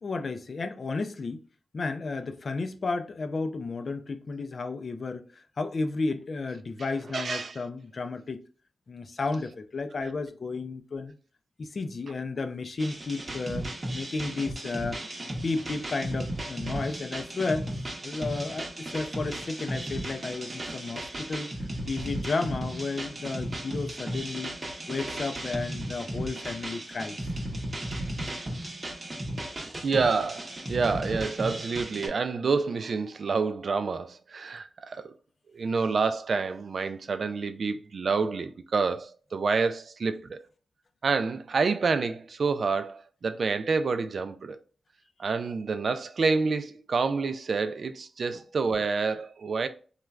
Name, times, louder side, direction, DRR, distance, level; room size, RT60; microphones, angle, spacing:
voice 1, 0.0-1.4 1.7-5.3 5.6-8.4 8.9-11.1 11.6-13.7 13.9-17.7 18.0-21.5 21.9-24.6 24.9-27.2, left 3 dB, 55° left, 0.4 m, -33 dB
voice 2, 7.1-7.6 29.8-35.1 35.5-40.4 41.0-44.6 45.2-49.7, right 4 dB, 60° right, 0.3 m, -28 dB
sound 1, 12.8-32.1, right 1 dB, 35° right, 0.8 m, -35 dB
3.2 x 2.2 x 2.3 m
cardioid pair, 75°, 0 cm